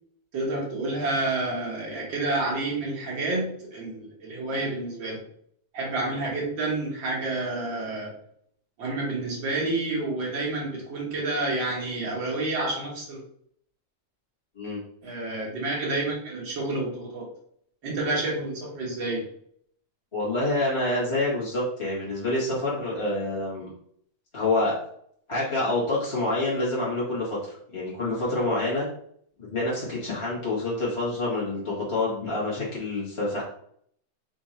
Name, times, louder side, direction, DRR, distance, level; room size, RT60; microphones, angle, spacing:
voice 1, 0.3-5.2 5.7-8.1 8.8-13.2 15.0-17.3 17.8-19.3, right 2 dB, 50° right, -3 dB, 1.6 m, -29 dB
voice 2, 20.1-23.7 24.3-24.7 25.3-27.4 27.7-28.9 29.5-33.4, left 2 dB, 50° left, -7 dB, 0.3 m, -27 dB
4.9 x 2.5 x 4.3 m, 0.66 s
omnidirectional pair, 3.4 m